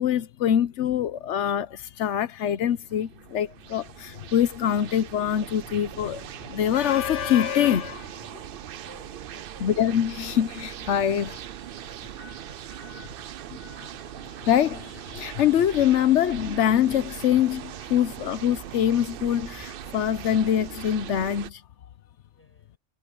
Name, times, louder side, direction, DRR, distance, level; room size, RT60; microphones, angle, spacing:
voice 1, 0.0-8.3 9.6-11.4 12.2-12.4 12.8-13.1 13.6-13.9 14.4-21.6, left 10 dB, 85° left, 1.1 m, -24 dB
sound 1, 2.4-21.5, right 11 dB, 60° right, 0.7 m, -40 dB
voice 2, 8.8-9.7 12.8-13.4 22.3-22.8, equal, 10° left, 8.0 m, -56 dB
omnidirectional pair, 1.2 m